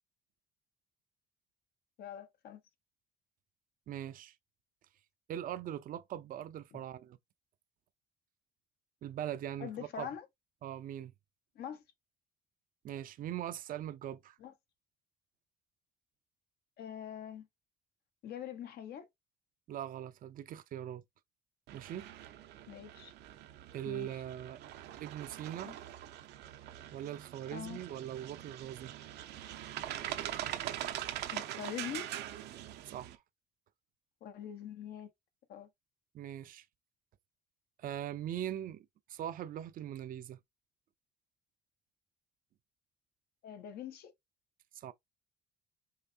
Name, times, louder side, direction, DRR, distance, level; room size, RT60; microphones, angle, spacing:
voice 1, 2.0-2.6 6.7-6.8 9.6-10.3 11.5-11.8 14.4-14.5 16.8-17.5 18.2-19.1 22.7-23.1 23.9-24.1 25.6-25.7 27.5-27.8 31.3-32.1 34.2-35.1 35.5-35.7 43.4-44.1, left 9 dB, 70° left, 1.2 m, -43 dB
voice 2, 3.9-4.3 5.3-7.2 9.0-9.7 10.0-10.1 10.6-11.1 12.8-14.4 19.7-21.0 21.7-22.1 23.7-24.6 25.0-25.7 26.9-28.9 30.4-30.5 32.9-33.2 36.1-36.6 37.8-40.4 44.7-44.9, right 11 dB, 55° right, 0.6 m, -41 dB
sound 1, 21.7-33.2, right 12 dB, 80° right, 0.9 m, -43 dB
5.7 x 3.1 x 2.8 m
cardioid pair, 110°, 17 cm